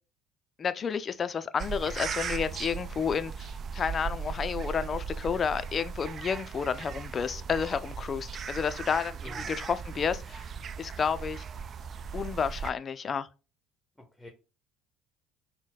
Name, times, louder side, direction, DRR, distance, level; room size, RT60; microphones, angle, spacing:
voice 1, 0.6-3.5 3.7-10.5 10.8-11.4 12.1-13.3, left 6 dB, 40° left, 0.4 m, -31 dB
sound 1, 1.6-12.7, right 6 dB, 45° right, 0.3 m, -38 dB
voice 2, 9.2-9.6 14.0-14.3, left 1 dB, 5° left, 0.8 m, -48 dB
4.0 x 2.1 x 3.9 m
hypercardioid pair, 70°, 0 cm